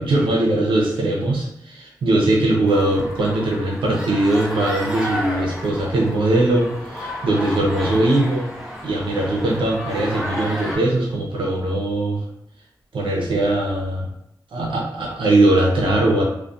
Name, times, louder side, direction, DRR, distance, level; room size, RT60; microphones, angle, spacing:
voice 1, 0.0-8.5 8.8-12.2 12.9-14.1 14.5-16.2, right 2 dB, 90° right, -2 dB, 0.6 m, -20 dB
sound 1, 2.7-10.8, equal, 5° right, 0.8 m, -32 dB
2.3 x 2.2 x 2.5 m, 0.79 s
cardioid pair, 45°, 8 cm